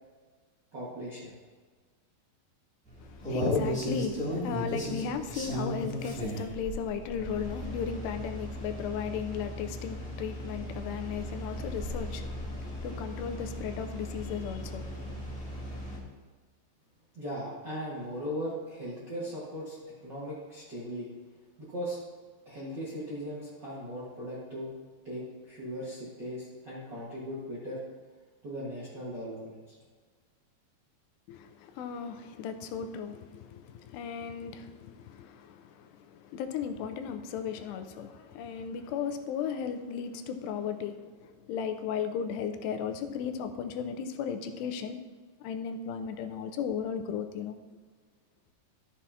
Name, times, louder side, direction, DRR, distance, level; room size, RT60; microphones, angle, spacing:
voice 1, 0.7-1.3 17.1-21.1 21.6-22.0 22.4-24.7 25.0-27.8 28.4-29.7, equal, 55° right, -9 dB, 1.2 m, -38 dB
sound 1, 2.9-16.0, equal, 5° left, 0.8 m, -37 dB
voice 2, 3.0-14.9 31.3-45.0 45.4-47.6, left 7 dB, 90° left, 7 dB, 2.7 m, -35 dB
12.5 x 7.3 x 2.8 m, 1.4 s
omnidirectional pair, 4.8 m